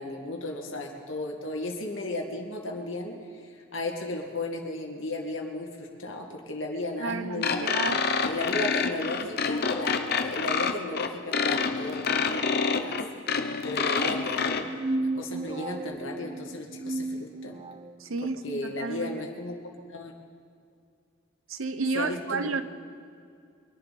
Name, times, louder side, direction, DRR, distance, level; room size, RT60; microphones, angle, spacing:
voice 1, 0.0-3.2 3.4-7.6 8.3-13.0 13.6-14.6 15.1-17.6 18.4-19.6 19.9-20.1 21.9-22.6, left 2 dB, 65° left, 1 dB, 2.2 m, -35 dB
voice 2, 7.0-8.0 18.0-19.3 21.5-22.6, right 4 dB, 80° right, 11 dB, 0.8 m, -31 dB
sound 1, 7.4-14.6, left 5 dB, 50° left, 0.8 m, -27 dB
sound 2, 14.5-18.0, right 2 dB, 25° right, 0.4 m, -34 dB
23.5 x 11.0 x 4.3 m, 2.3 s
head